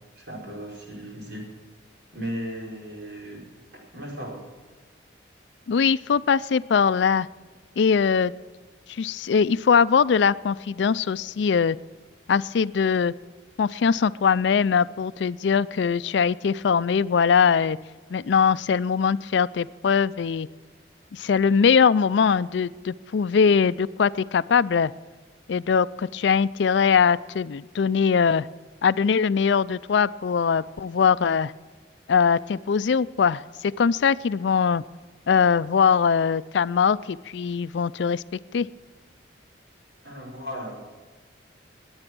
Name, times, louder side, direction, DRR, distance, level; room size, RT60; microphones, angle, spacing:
voice 1, 0.2-1.5 2.1-3.4 3.7-4.4 40.0-40.8, equal, 60° right, -1 dB, 4.9 m, -36 dB
voice 2, 5.7-7.3 7.8-8.3 8.9-11.8 12.3-13.1 13.6-17.8 18.1-20.5 21.1-24.9 25.5-28.5 28.8-31.5 32.1-34.8 35.3-38.2 38.5-38.7, left 6 dB, 70° left, 17 dB, 0.4 m, -21 dB
20.5 x 8.8 x 6.1 m, 1.3 s
head